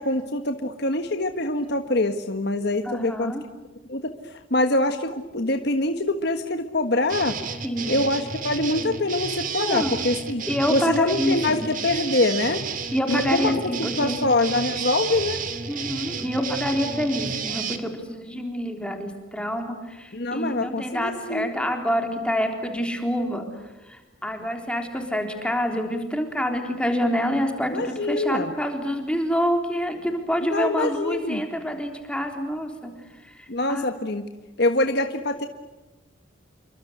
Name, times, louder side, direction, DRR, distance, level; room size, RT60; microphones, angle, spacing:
voice 1, 0.0-3.3 3.9-7.4 7.9-10.4 10.7-12.6 13.1-13.5 13.8-15.4 20.1-21.5 27.7-28.5 30.5-31.4 33.5-34.3 34.6-35.5, left 2 dB, 55° left, 6 dB, 1.6 m, -24 dB
voice 2, 2.8-3.4 7.6-8.0 9.6-9.9 10.5-11.7 12.9-14.2 15.7-23.5 23.8-33.8, equal, 5° left, 4 dB, 3.7 m, -27 dB
sound 1, 7.1-17.8, right 6 dB, 45° right, 2.5 m, -32 dB
29.0 x 24.0 x 8.1 m, 1.1 s
head